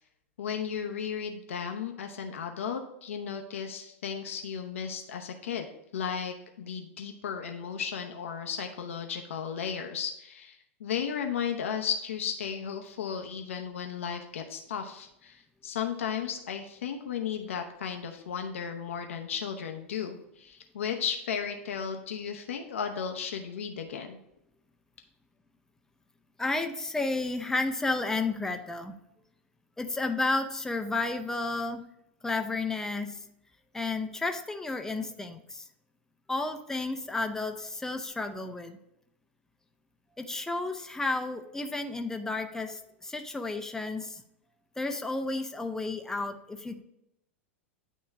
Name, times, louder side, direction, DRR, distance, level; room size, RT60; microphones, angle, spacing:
voice 1, 0.4-5.7 5.9-24.2, left 7 dB, 75° left, 5 dB, 0.8 m, -35 dB
voice 2, 26.4-29.0 29.8-31.8 32.2-33.2 33.7-35.6 36.3-38.8 40.2-44.2 44.8-46.8, left 3 dB, 5° left, 6 dB, 0.6 m, -32 dB
9.1 x 3.1 x 4.6 m, 0.79 s
hypercardioid pair, 95°, 7 cm